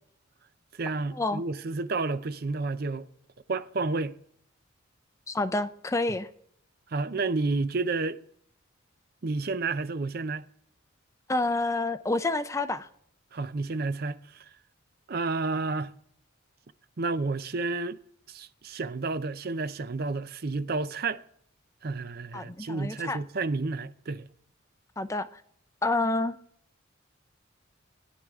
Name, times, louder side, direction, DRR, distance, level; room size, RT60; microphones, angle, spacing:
voice 1, 0.8-3.1 3.5-4.2 6.9-8.2 9.2-10.4 13.3-14.4 15.1-15.9 17.0-18.0 18.3-21.2 21.8-24.3, right 3 dB, 45° right, 0.5 m, -30 dB
voice 2, 5.3-6.3 11.3-12.9 22.3-23.2 25.0-25.4 25.8-26.4, left 2 dB, 15° left, 0.4 m, -28 dB
17.0 x 10.5 x 3.6 m
head